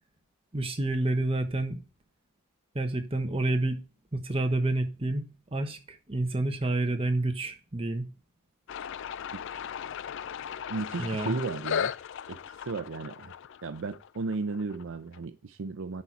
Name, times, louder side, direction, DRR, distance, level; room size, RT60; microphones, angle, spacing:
voice 1, 0.5-1.8 2.7-3.8 4.1-5.2 5.5-8.0 11.0-11.4, right 2 dB, 25° right, 1.1 m, -29 dB
sound 1, 8.7-15.2, left 8 dB, 55° left, 0.4 m, -37 dB
voice 2, 9.3-9.7 10.7-11.9 12.3-13.3 13.6-16.0, right 4 dB, 60° right, 0.5 m, -35 dB
10.5 x 4.2 x 4.7 m
head